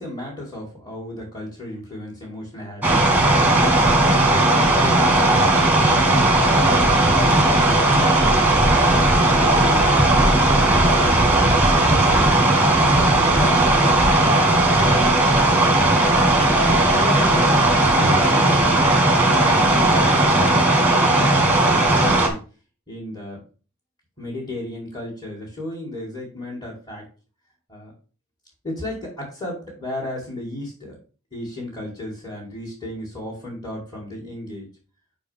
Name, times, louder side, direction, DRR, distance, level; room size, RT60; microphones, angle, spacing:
voice 1, 0.0-5.5 5.9-10.2 11.7-12.4 12.8-14.4 14.7-15.7 16.9-17.6 17.9-22.4 22.9-23.4 24.2-27.1 27.7-27.9 28.6-31.0 31.3-34.7, left 1 dB, 20° left, -6 dB, 2.1 m, -34 dB
sound 1, 2.8-22.3, right 2 dB, 10° right, 1.2 m, -17 dB
5.4 x 4.6 x 5.5 m, 0.37 s
head